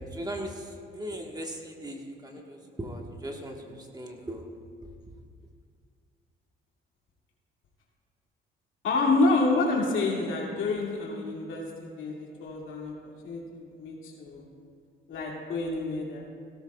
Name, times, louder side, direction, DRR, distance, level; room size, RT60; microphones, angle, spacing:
voice 1, 0.0-4.5 4.8-4.9, right 1 dB, 20° right, 1 dB, 1.5 m, -38 dB
voice 2, 8.8-13.4 13.8-14.4 15.1-16.2, left 3 dB, 75° left, -3 dB, 2.5 m, -28 dB
16.5 x 13.0 x 2.4 m, 2.1 s
cardioid pair, 90°, 20 cm